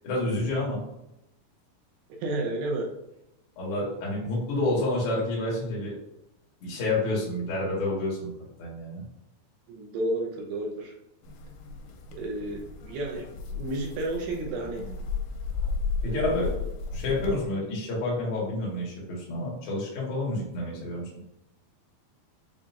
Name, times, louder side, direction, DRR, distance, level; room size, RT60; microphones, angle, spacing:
voice 1, 0.0-0.8 3.6-5.9 6.6-8.3 8.6-9.0 16.0-16.5 16.9-21.0, left 2 dB, 70° left, -5 dB, 1.3 m, -29 dB
voice 2, 2.2-2.9 9.7-10.9 12.1-13.3 13.5-14.9 16.1-16.3, right 1 dB, 80° right, 0 dB, 2.6 m, -32 dB
sound 1, 11.2-17.5, left 4 dB, 85° left, 2.8 m, -34 dB
7.1 x 2.4 x 2.5 m, 0.85 s
omnidirectional pair, 4.9 m